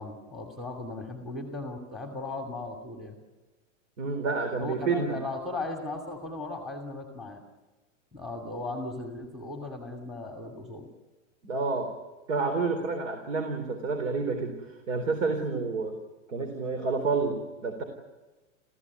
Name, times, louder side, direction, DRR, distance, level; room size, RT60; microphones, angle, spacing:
voice 1, 0.0-3.2 4.6-7.4 8.1-10.9, left 2 dB, ahead, 2 dB, 2.6 m, -37 dB
voice 2, 4.0-5.2 11.4-11.9 12.3-16.0 16.3-17.8, right 4 dB, 75° right, 6 dB, 4.1 m, -29 dB
28.0 x 16.0 x 9.7 m, 1.2 s
hypercardioid pair, 140°, 38 cm